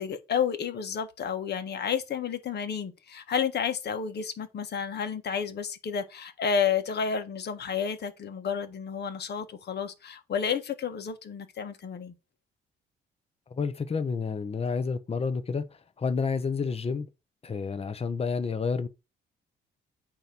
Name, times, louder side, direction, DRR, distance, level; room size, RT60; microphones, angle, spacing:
voice 1, 0.0-12.1, left 7 dB, 55° left, 1.4 m, -31 dB
voice 2, 13.6-15.6 16.0-17.1 17.4-18.9, left 5 dB, 30° left, 0.9 m, -29 dB
8.7 x 3.0 x 6.1 m
cardioid pair, 90°, 20 cm